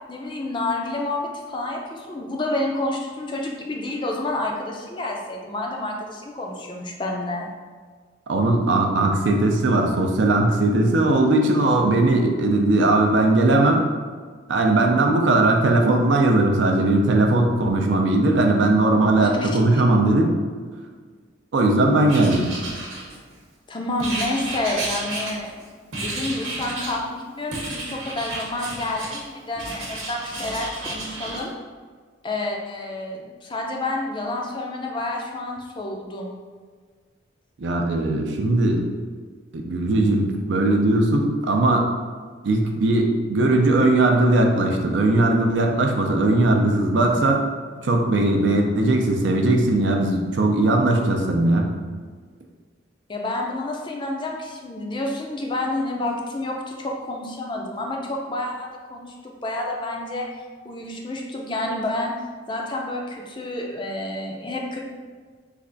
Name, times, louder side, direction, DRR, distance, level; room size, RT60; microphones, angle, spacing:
voice 1, 0.1-7.5 19.2-19.5 23.7-25.5 25.9-31.5 32.2-36.3 53.1-60.3 60.6-62.1 62.5-64.8, left 2 dB, 25° left, 0 dB, 0.4 m, -29 dB
voice 2, 8.3-13.9 14.5-20.3 21.5-22.5 37.6-38.8 39.5-41.9 42.4-47.4 47.8-51.7, right 2 dB, 65° right, 2 dB, 0.5 m, -19 dB
Writing, 22.1-23.4 24.0-25.6 25.9-27.0 27.5-29.2 29.6-31.4, right 2 dB, 85° right, 0.9 m, -32 dB
3.3 x 2.4 x 3.8 m, 1.6 s
head